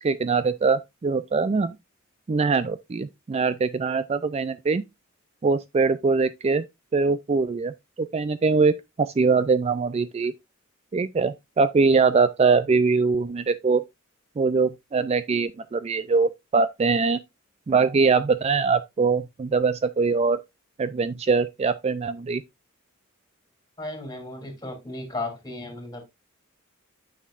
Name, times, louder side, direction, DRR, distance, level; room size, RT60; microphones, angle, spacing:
voice 1, 0.0-1.7 2.3-4.8 5.4-6.6 6.9-10.3 10.9-13.8 14.4-17.2 17.7-20.4 20.8-22.4, right 4 dB, 30° right, 0.3 m, -22 dB
voice 2, 23.8-26.0, left 2 dB, 20° left, 2.9 m, -35 dB
9.1 x 6.4 x 2.4 m
head